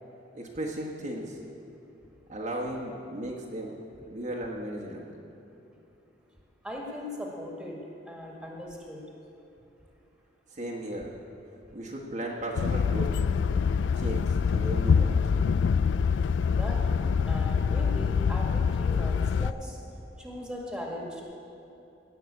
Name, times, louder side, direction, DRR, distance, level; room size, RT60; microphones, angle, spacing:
voice 1, 0.3-1.4 2.3-3.8 4.1-5.2 10.5-11.1 11.7-13.2 13.9-15.2, right 1 dB, 45° right, -2 dB, 1.3 m, -35 dB
voice 2, 6.6-7.8 8.1-9.0 16.6-17.0 17.3-19.8 20.2-21.2, left 1 dB, 5° right, -2 dB, 1.9 m, -39 dB
sound 1, 12.5-19.5, left 6 dB, 85° left, 0.3 m, -25 dB
17.0 x 5.9 x 8.2 m, 2.9 s
head